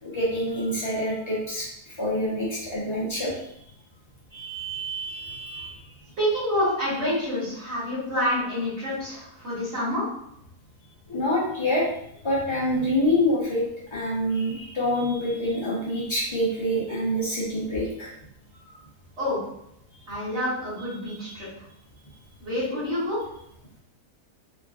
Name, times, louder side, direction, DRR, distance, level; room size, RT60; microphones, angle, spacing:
voice 1, 0.0-3.5 4.3-5.7 11.1-11.9 12.2-13.6 13.9-18.1, equal, 35° left, -7 dB, 0.4 m, -26 dB
voice 2, 6.2-10.1 19.2-19.4 20.1-21.5 22.4-23.2, left 1 dB, 50° right, -13 dB, 1.6 m, -27 dB
3.2 x 2.4 x 2.3 m, 0.76 s
omnidirectional pair, 1.7 m